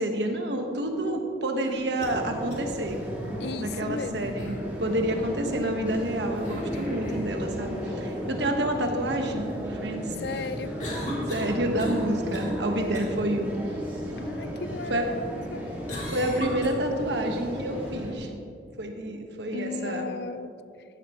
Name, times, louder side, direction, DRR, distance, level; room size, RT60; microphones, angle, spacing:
voice 1, 0.0-3.0 3.6-10.1 11.3-13.6 14.4-14.5 14.9-15.1 16.1-18.3 18.8-20.1, right 1 dB, 80° right, 4 dB, 1.3 m, -29 dB
sound 1, 1.6-2.1 2.5-2.6 4.4-4.7 6.4-7.3 10.8-12.1 12.3-12.6 12.9-13.1 15.9-16.7, equal, 45° left, 2.8 m, -35 dB
sound 2, 2.0-18.1, equal, 10° right, 2.1 m, -35 dB
voice 2, 3.4-4.4 10.2-10.7 14.2-15.7 19.5-20.5, left 4 dB, 65° left, 14 dB, 0.4 m, -35 dB
15.5 x 11.0 x 3.1 m, 2.5 s
head